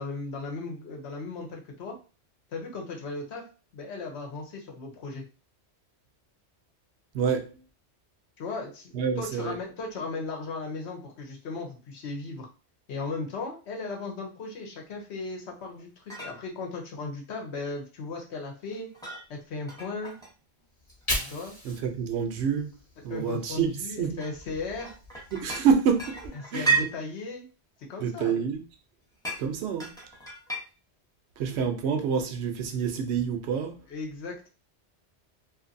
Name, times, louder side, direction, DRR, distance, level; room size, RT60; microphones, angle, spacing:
voice 1, 0.0-1.9 2.5-3.4 3.7-5.2 8.4-12.5 12.9-18.9 19.3-20.1 21.3-21.5 23.1-24.9 26.5-27.4 27.9-28.4 33.9-34.5, left 3 dB, 80° left, 1.0 m, -36 dB
voice 2, 7.1-7.6 8.9-9.5 21.6-22.7 23.0-24.2 25.3-26.9 28.0-28.6 29.4-29.9 31.4-33.8, right 6 dB, 75° right, 0.8 m, -27 dB
sound 1, 15.8-15.9 16.1-16.4 18.7-19.3 19.7-20.3 20.9-21.4 22.5-22.7 23.3-23.4 24.2-25.7 25.9-26.9 29.2-29.4 29.8-30.6, right 5 dB, 5° left, 0.7 m, -32 dB
Fire, 20.7-23.9 24.2-26.3, left 1 dB, 25° left, 1.1 m, -39 dB
2.7 x 2.5 x 2.5 m
omnidirectional pair, 1.1 m